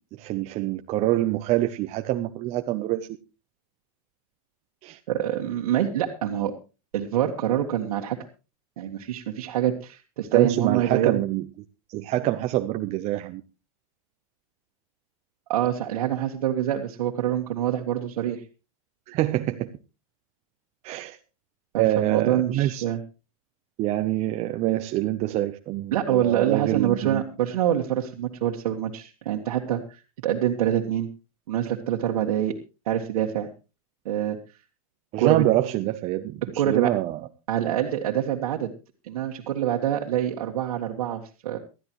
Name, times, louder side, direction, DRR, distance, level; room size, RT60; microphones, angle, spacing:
voice 1, 0.2-3.1 4.8-5.0 10.3-11.4 11.9-13.4 19.1-19.7 20.8-21.2 21.8-22.8 23.8-27.2 35.1-37.2, right 15 dB, 35° right, 7 dB, 0.7 m, -25 dB
voice 2, 5.1-6.5 6.9-8.2 8.8-11.2 15.5-18.4 21.7-23.0 25.9-31.1 31.5-32.5 32.8-33.5 34.0-34.4 35.2-35.5 36.6-36.9 37.5-38.7 39.1-41.6, right 11 dB, 80° right, -1 dB, 1.7 m, -25 dB
19.5 x 13.0 x 3.1 m, 0.31 s
supercardioid pair, 135°, 19 cm